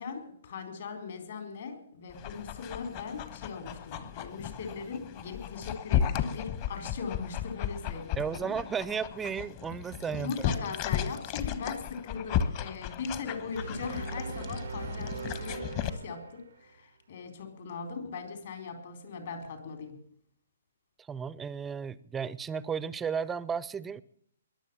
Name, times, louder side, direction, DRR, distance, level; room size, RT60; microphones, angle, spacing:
voice 1, 0.0-8.7 10.2-20.0, left 5 dB, 60° left, 5 dB, 4.3 m, -39 dB
Dog, 2.1-15.9, left 9 dB, 35° left, 1.2 m, -35 dB
voice 2, 8.2-10.5 21.0-24.0, right 6 dB, 10° right, 18 dB, 0.5 m, -34 dB
sound 1, 13.5-16.7, right 5 dB, 75° right, 0.7 m, -40 dB
21.5 x 7.3 x 7.2 m, 0.68 s
hypercardioid pair, 145°, 0 cm